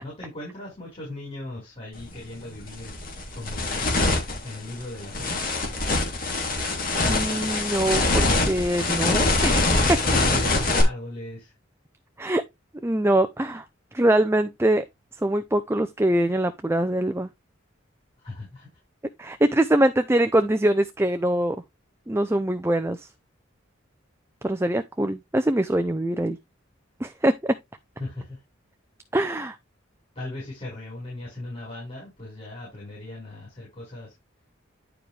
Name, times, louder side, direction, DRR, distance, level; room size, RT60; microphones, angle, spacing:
voice 1, 0.0-2.9 3.3-3.9 4.4-5.5 9.7-11.5 18.2-18.7 28.0-28.4 30.1-34.1, left 2 dB, 30° left, 5.0 m, -37 dB
sound 1, 2.0-2.1 2.6-10.8, left 2 dB, 45° left, 2.9 m, -24 dB
voice 2, 7.1-9.7 12.2-12.4 12.8-13.6 13.9-14.8 15.2-17.3 19.2-21.6 22.1-23.1 24.4-26.4 27.0-27.6 29.1-29.6, right 1 dB, 15° right, 0.5 m, -23 dB
10.5 x 4.9 x 3.3 m
head